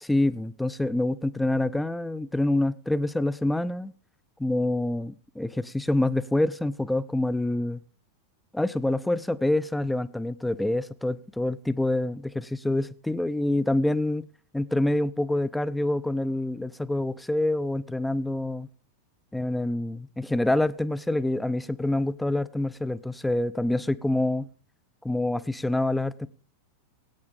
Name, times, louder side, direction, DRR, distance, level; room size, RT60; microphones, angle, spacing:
voice 1, 0.0-3.9 4.4-7.8 8.5-14.3 14.5-18.7 19.3-24.5 25.0-26.3, left 1 dB, 5° left, 0.4 m, -26 dB
18.0 x 8.6 x 3.4 m
figure-of-eight pair, 90°, 0 cm